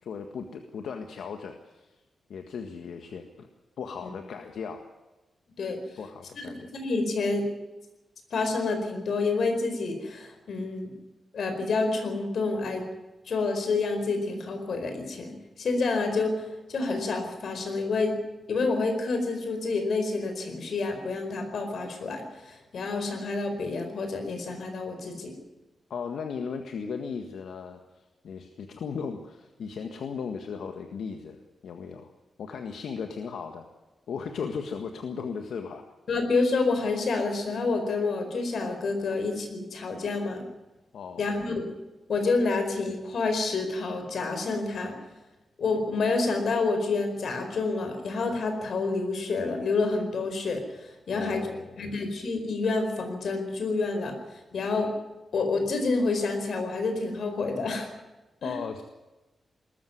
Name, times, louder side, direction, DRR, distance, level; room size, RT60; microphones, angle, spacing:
voice 1, 0.0-2.0 2.3-3.5 3.8-4.9 6.0-6.7 25.9-32.1 32.4-33.7 34.1-35.8 40.9-41.4 51.1-51.8 58.4-58.8, left 6 dB, 80° left, 5 dB, 1.7 m, -37 dB
voice 2, 6.4-7.4 8.3-10.9 11.3-12.8 13.3-18.1 18.5-25.3 36.1-40.4 41.2-41.7 42.1-45.0 45.6-51.4 51.8-54.9 55.3-57.9 58.4-58.5, left 3 dB, 65° left, 6 dB, 4.6 m, -28 dB
20.5 x 14.0 x 9.5 m, 1.1 s
wide cardioid pair, 150°, 0 cm